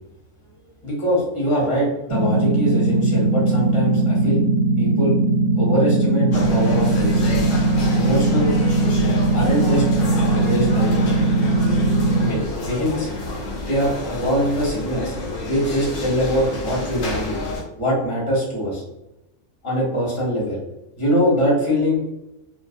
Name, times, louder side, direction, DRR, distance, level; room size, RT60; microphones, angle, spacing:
voice 1, 0.8-4.4 4.8-5.2 5.5-7.3 8.0-8.5 9.3-9.8 10.3-11.0 12.2-13.1 13.7-17.4 17.8-18.8 19.6-20.6 21.0-22.0, equal, 25° left, -5 dB, 0.8 m, -23 dB
sound 1, 2.1-12.3, right 2 dB, 60° right, 0.8 m, -19 dB
sound 2, 6.3-17.6, left 2 dB, 65° left, 0.9 m, -29 dB
2.6 x 2.1 x 2.4 m, 0.90 s
omnidirectional pair, 1.5 m